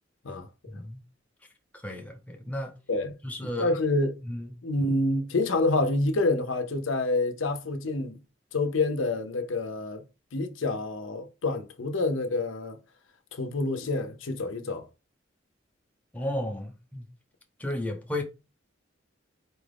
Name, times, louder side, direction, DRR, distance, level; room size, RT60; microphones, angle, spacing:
voice 1, 0.7-1.0 1.8-2.7 3.2-3.7 4.2-4.5 16.1-17.1 17.6-18.2, left 1 dB, 10° left, 0.7 m, -33 dB
voice 2, 3.6-4.2 4.6-8.2 8.5-10.0 10.3-12.8 13.3-14.9, left 2 dB, 85° left, 0.6 m, -27 dB
4.4 x 2.4 x 3.3 m
head